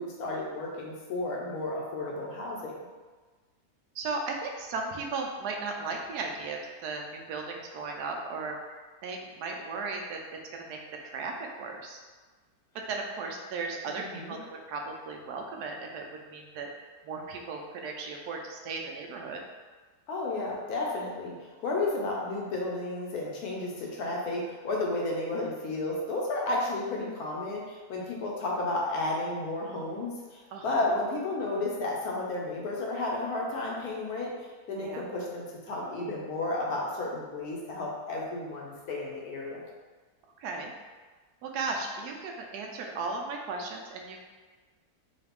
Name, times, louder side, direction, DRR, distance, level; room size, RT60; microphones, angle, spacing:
voice 1, 0.0-2.7 13.9-14.4 20.1-39.6, left 2 dB, 75° left, -3 dB, 1.2 m, -32 dB
voice 2, 3.9-12.0 12.7-19.4 30.5-30.8 34.8-35.0 40.4-40.7 41.4-44.2, right 3 dB, 85° right, 1 dB, 1.1 m, -36 dB
4.0 x 2.4 x 3.4 m, 1.4 s
omnidirectional pair, 1.7 m